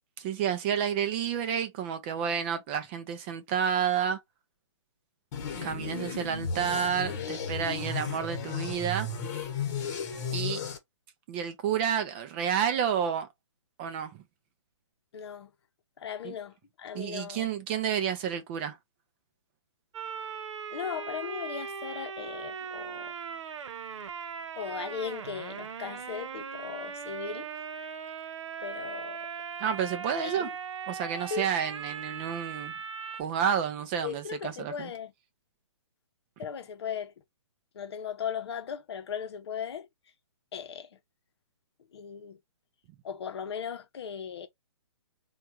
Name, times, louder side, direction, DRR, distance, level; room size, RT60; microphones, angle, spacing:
voice 1, 0.2-4.2 5.6-9.1 10.3-10.6 11.3-13.3 13.8-14.2 16.2-16.3 16.9-18.8 29.6-30.5 30.9-32.7 33.2-34.9, right 8 dB, 20° right, 0.4 m, -30 dB
the siths, 5.3-10.8, left 5 dB, 35° left, 1.1 m, -34 dB
voice 2, 15.1-15.5 16.0-17.5 20.7-23.1 24.6-27.5 28.6-29.3 30.2-30.5 31.3-31.5 34.0-35.1 36.4-37.1 37.7-39.9 40.5-41.0 41.9-42.4 43.0-44.5, left 7 dB, 60° left, 0.7 m, -37 dB
sound 1, 19.9-33.2, right 6 dB, 75° right, 0.7 m, -39 dB
3.4 x 2.3 x 2.9 m
hypercardioid pair, 150°, 16 cm